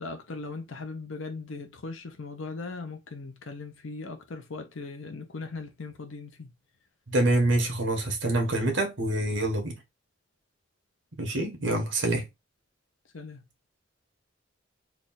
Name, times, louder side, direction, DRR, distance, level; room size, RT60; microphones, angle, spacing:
voice 1, 0.0-6.5 13.1-13.4, left 3 dB, 85° left, 0.7 m, -39 dB
voice 2, 7.1-9.8 11.2-12.3, right 1 dB, 75° right, 1.3 m, -26 dB
3.3 x 2.4 x 4.0 m
head